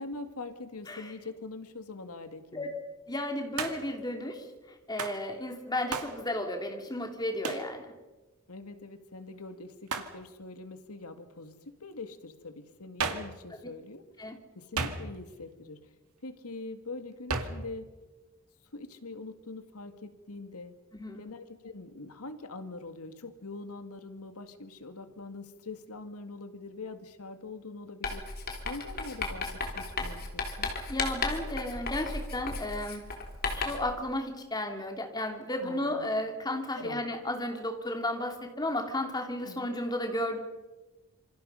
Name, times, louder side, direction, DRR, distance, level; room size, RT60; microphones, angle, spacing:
voice 1, 0.0-2.7 8.5-14.0 14.6-15.9 16.2-17.9 18.7-20.8 21.2-28.2 28.6-30.7 35.6-36.1 36.8-37.0 39.4-39.7, left 3 dB, 85° left, 8 dB, 1.9 m, -43 dB
voice 2, 3.1-4.4 4.9-7.9 14.2-14.4 20.9-21.3 30.9-33.0 33.5-40.4, left 1 dB, 20° left, 3 dB, 2.8 m, -33 dB
Hands, 3.6-4.0 5.0-5.2 5.9-6.2 7.4-7.7 9.9-10.2 13.0-13.4 14.8-15.3 17.3-17.7, right 4 dB, 85° right, 2.3 m, -33 dB
Writing, 28.0-33.9, left 3 dB, 45° left, 3.6 m, -35 dB
27.5 x 26.0 x 5.6 m, 1.2 s
head